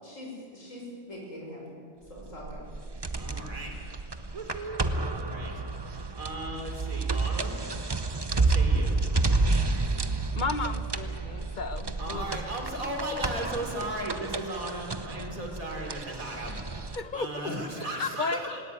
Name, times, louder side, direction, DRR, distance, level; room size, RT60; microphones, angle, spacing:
voice 1, 0.0-1.8 2.1-2.6, left 1 dB, 65° left, -2 dB, 6.4 m, -42 dB
sound 1, 2.2-17.0, right 3 dB, 25° right, 0.7 m, -30 dB
voice 2, 3.1-3.8 4.3-5.5 5.8-7.9 8.3-9.0 12.0-18.6, right 1 dB, 80° right, 2 dB, 3.9 m, -37 dB
voice 3, 10.4-12.2 16.9-17.4 17.9-18.6, left 4 dB, 40° left, 11 dB, 0.9 m, -33 dB
19.0 x 18.5 x 9.3 m, 2.2 s
omnidirectional pair, 1.4 m